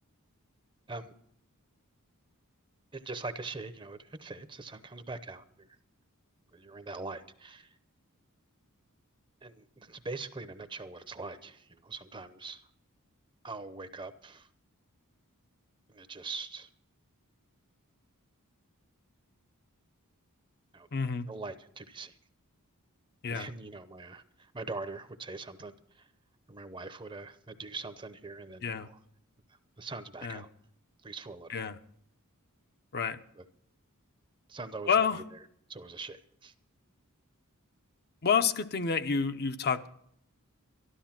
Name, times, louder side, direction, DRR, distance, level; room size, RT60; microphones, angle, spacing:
voice 1, 2.9-5.7 6.5-7.8 9.4-12.7 13.4-14.5 15.9-16.7 20.7-20.9 21.3-22.2 23.3-26.1 26.5-29.0 29.5-30.5 31.0-31.6 33.4-33.5 34.5-34.9 35.3-35.4 35.7-36.5, right 3 dB, 20° right, 0.8 m, -42 dB
voice 2, 20.9-21.3 23.2-23.5 28.6-28.9 30.2-30.4 31.5-31.8 32.9-33.2 34.9-35.2 38.2-39.9, left 6 dB, 45° left, 0.7 m, -29 dB
12.5 x 12.5 x 5.9 m
head